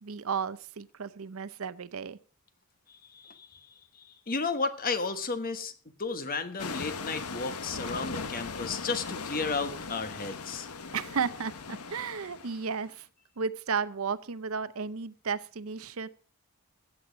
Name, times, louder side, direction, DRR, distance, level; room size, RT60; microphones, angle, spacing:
voice 1, 0.0-2.2 10.9-13.1 13.4-16.1, right 5 dB, 70° right, 15 dB, 0.7 m, -33 dB
voice 2, 3.1-3.6 4.3-5.7 6.0-10.7, left 4 dB, 40° left, 10 dB, 1.2 m, -33 dB
sound 1, 6.6-12.9, left 4 dB, 90° left, 1.1 m, -39 dB
15.0 x 8.5 x 5.1 m, 0.40 s
head